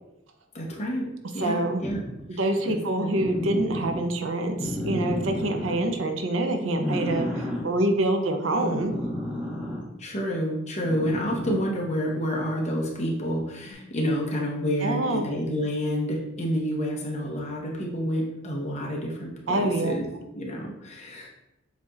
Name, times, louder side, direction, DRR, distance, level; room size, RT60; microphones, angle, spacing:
voice 1, 0.5-1.1 1.3-2.0 2.3-2.4 2.6-3.1 10.0-20.1 20.3-21.3, equal, 35° left, -1 dB, 0.8 m, -29 dB
voice 2, 1.4-1.9 2.4-8.9 14.8-15.2 19.5-19.9, right 1 dB, 75° right, 4 dB, 0.6 m, -26 dB
sound 1, 1.8-2.2 3.2-4.0 4.6-5.8 6.6-7.6 8.6-9.8 10.8-11.8 13.6-13.7, left 1 dB, 5° right, 1.2 m, -31 dB
7.2 x 2.9 x 2.4 m, 0.87 s
head